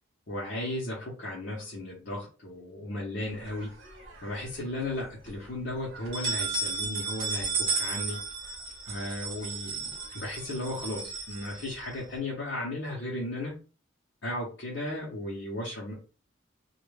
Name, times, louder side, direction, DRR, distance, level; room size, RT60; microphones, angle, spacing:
voice 1, 0.3-3.7 4.2-8.2 8.8-13.6 14.2-15.9, left 1 dB, 60° left, -5 dB, 0.7 m, -35 dB
sound 1, 3.5-4.4 4.8-4.9 5.3-5.4 5.9-12.1, right 4 dB, 70° right, 0.8 m, -34 dB
2.2 x 2.1 x 3.1 m, 0.35 s
head